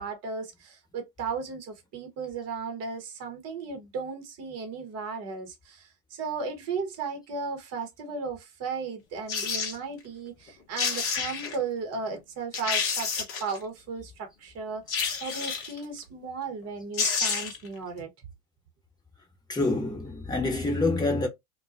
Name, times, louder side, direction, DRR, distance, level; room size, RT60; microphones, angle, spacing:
voice 1, 0.0-18.1, right 5 dB, 35° right, 1.0 m, -35 dB
sound 1, 9.3-9.8 10.5-10.6 10.8-11.6 12.1-12.2 12.5-13.6 14.9-15.8 16.6-16.7 16.9-17.7 18.0-18.1, left 5 dB, 30° left, 0.9 m, -29 dB
voice 2, 19.5-21.3, left 2 dB, 10° left, 1.1 m, -26 dB
2.3 x 2.2 x 2.5 m
hypercardioid pair, 95°, 44 cm